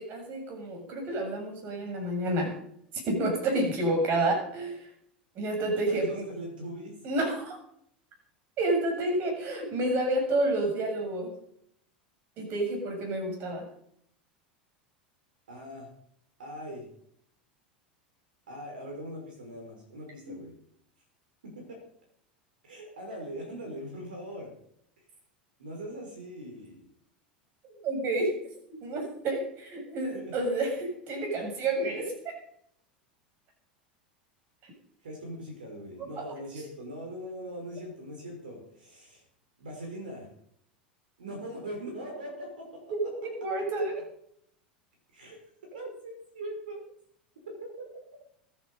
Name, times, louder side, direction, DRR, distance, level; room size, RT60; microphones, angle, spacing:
voice 1, 0.0-2.6 3.1-4.9 5.4-6.2 7.0-7.6 8.6-11.3 12.4-13.7 27.8-28.4 28.8-32.3 36.2-36.3 42.9-44.0, right 2 dB, 40° right, 2 dB, 7.3 m, -29 dB
voice 2, 5.9-7.0 15.5-15.9 16.4-16.9 18.5-20.5 21.4-21.8 22.6-24.5 25.0-25.1 25.6-26.9 30.1-30.3 35.0-39.2 39.6-40.3 41.2-42.8 45.1-46.8 47.5-47.9, right 1 dB, 70° right, 2 dB, 5.5 m, -41 dB
22.0 x 11.0 x 5.5 m, 0.69 s
figure-of-eight pair, 80°, 5 cm